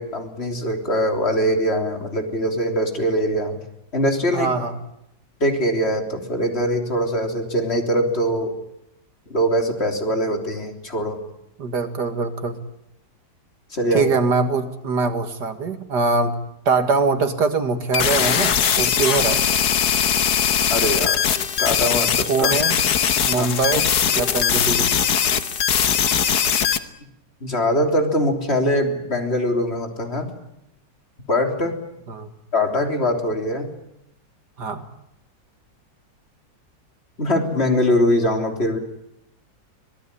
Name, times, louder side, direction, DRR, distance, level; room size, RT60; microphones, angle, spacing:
voice 1, 0.0-3.6 3.9-4.5 5.4-8.5 9.3-11.2 13.7-14.0 20.7-21.2 21.6-22.5 23.4-23.5 27.4-30.3 31.3-31.8 32.5-33.7 37.2-38.8, equal, 35° left, 4 dB, 3.7 m, -22 dB
voice 2, 4.3-4.8 11.6-12.6 13.9-16.3 16.7-19.4 22.3-22.8 23.3-24.9 32.1-32.3 34.6-34.9, right 4 dB, 65° right, 8 dB, 2.5 m, -23 dB
sound 1, 17.9-26.8, left 8 dB, 60° left, 1.7 m, -20 dB
25.0 x 18.5 x 10.0 m, 0.81 s
omnidirectional pair, 2.0 m